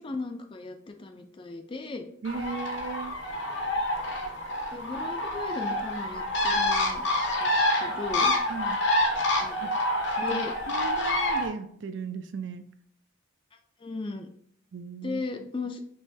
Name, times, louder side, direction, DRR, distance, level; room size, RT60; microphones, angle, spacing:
voice 1, 0.0-2.1 4.7-7.0 7.4-7.5 7.8-8.3 9.4-9.6 10.2-10.5 13.8-14.3 15.0-15.8, left 3 dB, 25° left, 6 dB, 0.4 m, -36 dB
Bird, 2.2-11.5, left 1 dB, 60° left, 0.7 m, -27 dB
voice 2, 2.2-3.1 8.5-8.8 9.6-9.7 10.2-12.6 14.7-15.5, right 5 dB, 60° right, 10 dB, 0.4 m, -37 dB
5.4 x 3.1 x 2.7 m, 0.65 s
head